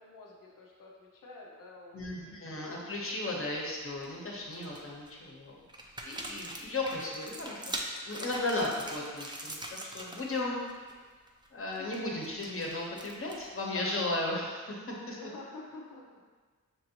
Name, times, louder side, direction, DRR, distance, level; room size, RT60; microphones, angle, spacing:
voice 1, 0.0-3.7 6.4-6.8 11.6-12.0 13.7-14.4 15.1-16.3, left 3 dB, 85° left, -2 dB, 0.7 m, -50 dB
voice 2, 1.9-5.6 6.0-7.7 8.1-10.6 11.5-14.8 15.1-15.2, left 2 dB, 45° left, -2 dB, 1.0 m, -35 dB
sound 1, 3.6-4.0 4.5-5.1 5.7-10.4 10.6-10.9 11.3-13.6, right 1 dB, 15° right, 0.5 m, -42 dB
6.0 x 2.6 x 2.9 m, 1.5 s
wide cardioid pair, 65°, 32 cm